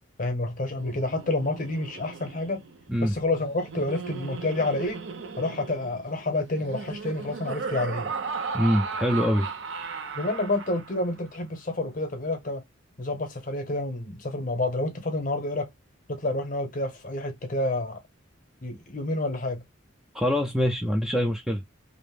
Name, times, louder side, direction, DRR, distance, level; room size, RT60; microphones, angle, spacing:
voice 1, 0.2-2.6 3.0-5.0 5.4-8.1 10.1-12.6 13.0-15.7 16.1-18.0 18.6-19.6, left 2 dB, 40° left, 0.7 m, -29 dB
Laughter, 0.6-11.1, right 5 dB, 65° right, 0.5 m, -36 dB
voice 2, 8.5-9.5 20.1-21.6, equal, ahead, 0.3 m, -24 dB
2.6 x 2.0 x 3.2 m
head